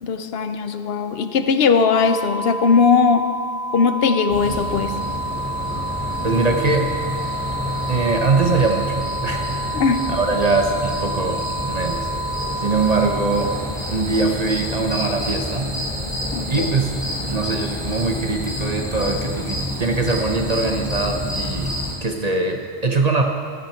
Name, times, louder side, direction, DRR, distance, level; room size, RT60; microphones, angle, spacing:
voice 1, 0.0-3.3 3.7-5.0 9.7-10.1 16.3-16.7, left 5 dB, 65° left, 9 dB, 0.9 m, -19 dB
sound 1, 1.9-13.6, right 1 dB, 35° left, 1.9 m, -29 dB
sound 2, 4.3-21.9, left 1 dB, 5° left, 3.9 m, -28 dB
voice 2, 6.2-6.9 7.9-9.8 10.1-12.1 12.6-13.5 13.9-15.7 16.5-16.9 17.2-23.2, right 3 dB, 40° right, 2 dB, 0.9 m, -22 dB
15.0 x 10.5 x 4.5 m, 2.1 s
omnidirectional pair, 1.1 m